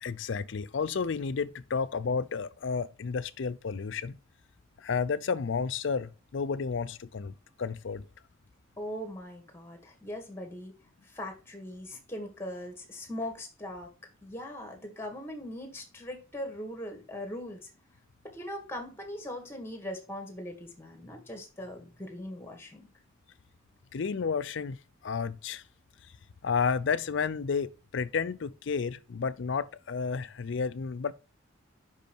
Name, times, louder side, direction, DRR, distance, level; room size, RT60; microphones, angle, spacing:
voice 1, 0.0-4.2 4.8-8.1 23.9-25.6 26.4-31.1, left 5 dB, 60° left, 0.5 m, -31 dB
voice 2, 8.8-10.7 11.1-13.9 14.2-17.7 18.2-22.9, left 1 dB, 10° left, 1.7 m, -40 dB
5.6 x 5.4 x 4.4 m
head